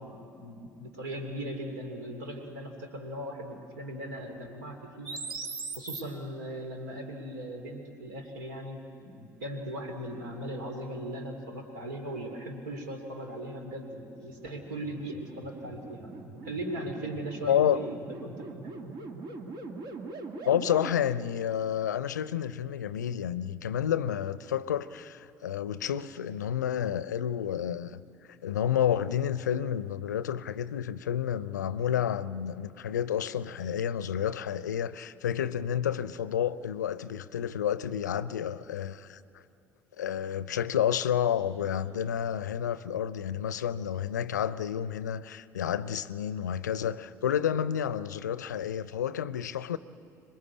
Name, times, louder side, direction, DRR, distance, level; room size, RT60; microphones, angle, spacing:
voice 1, 0.0-5.2 5.8-18.7, right 1 dB, 75° right, 2.8 m, -39 dB
sound 1, 5.0-6.0 14.1-20.9, right 3 dB, 55° right, 2.2 m, -41 dB
voice 2, 17.5-17.8 20.5-28.0 28.4-39.2 40.0-49.8, left 9 dB, 80° left, 0.5 m, -30 dB
25.5 x 21.5 x 8.5 m
figure-of-eight pair, 60°, 9 cm